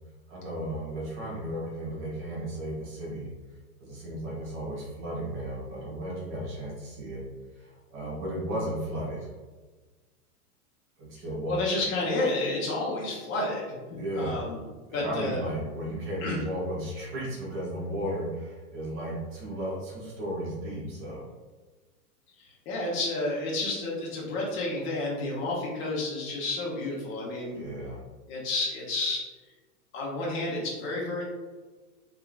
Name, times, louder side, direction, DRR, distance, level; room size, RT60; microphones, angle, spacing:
voice 1, 0.3-3.3 3.8-7.2 7.5-9.3 11.0-11.6 14.0-14.4 14.9-21.3 27.5-28.0, right 1 dB, 25° right, -4 dB, 1.3 m, -34 dB
voice 2, 11.5-14.6 14.9-15.4 16.2-16.4 22.4-27.6 28.3-29.2 29.9-31.2, left 2 dB, 25° left, -4 dB, 1.0 m, -30 dB
3.6 x 2.9 x 2.4 m, 1.3 s
figure-of-eight pair, 105°, 45 cm